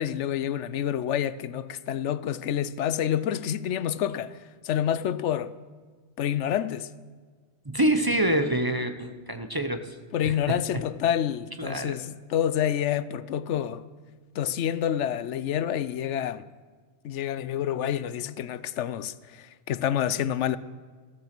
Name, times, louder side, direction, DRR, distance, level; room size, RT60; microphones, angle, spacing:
voice 1, 0.0-4.4 4.6-5.5 6.2-6.9 10.1-13.8 14.4-16.4 17.0-20.6, left 10 dB, 85° left, 1.0 m, -28 dB
voice 2, 7.7-10.6 11.6-12.0, right 1 dB, 20° right, 0.8 m, -27 dB
14.5 x 13.5 x 6.0 m
omnidirectional pair, 1.2 m